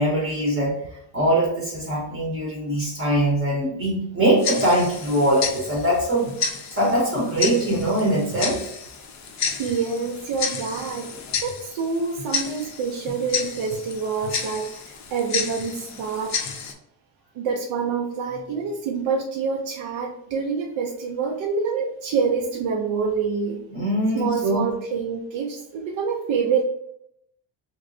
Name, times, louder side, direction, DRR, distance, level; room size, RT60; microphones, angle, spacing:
voice 1, 0.0-8.6 23.7-24.7, right 1 dB, 30° right, -3 dB, 0.7 m, -22 dB
Tick-tock, 4.4-16.7, left 6 dB, 40° left, 0.4 m, -31 dB
voice 2, 9.5-16.4 17.3-23.6 24.1-26.6, right 5 dB, 90° right, 1 dB, 0.6 m, -26 dB
3.0 x 3.0 x 2.6 m, 0.77 s
cardioid pair, 175°, 44 cm